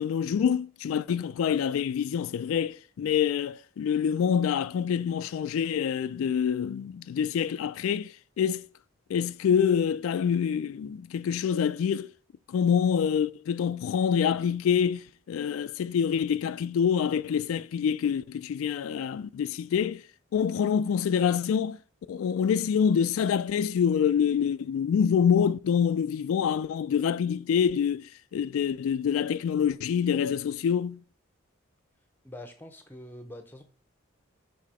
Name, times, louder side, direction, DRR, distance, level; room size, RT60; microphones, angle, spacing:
voice 1, 0.0-8.6 9.1-12.1 12.5-20.0 20.3-21.8 22.1-31.0, left 7 dB, 80° left, 0.3 m, -26 dB
voice 2, 32.2-33.6, left 1 dB, 10° left, 0.7 m, -44 dB
5.8 x 3.6 x 4.9 m
head